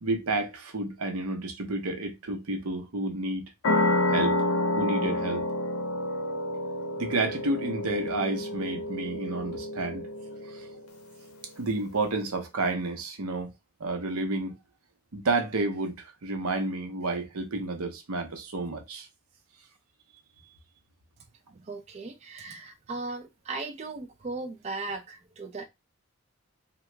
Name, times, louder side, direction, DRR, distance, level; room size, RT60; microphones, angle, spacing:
voice 1, 0.0-3.5 4.1-4.4 4.8-5.5 7.0-10.1 10.4-10.7 11.6-13.5 13.8-14.6 15.1-19.1, right 2 dB, 90° right, 0.8 m, -30 dB
sound 1, 3.6-10.8, left 1 dB, 80° left, 0.6 m, -29 dB
voice 2, 21.5-25.7, right 3 dB, 30° right, 0.3 m, -37 dB
2.9 x 2.2 x 3.2 m
head